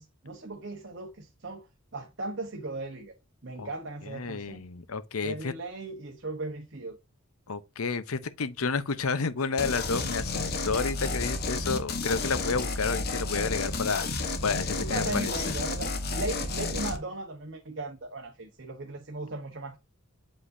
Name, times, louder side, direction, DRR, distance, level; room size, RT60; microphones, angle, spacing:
voice 1, 0.0-1.7 1.9-3.1 3.4-4.6 5.2-7.0 14.8-19.8, right 2 dB, 55° right, 1.0 m, -37 dB
voice 2, 4.0-5.5 7.5-15.6, left 4 dB, 85° left, 0.8 m, -31 dB
sound 1, 9.6-17.0, left 3 dB, 45° left, 1.1 m, -31 dB
7.7 x 5.1 x 2.7 m
head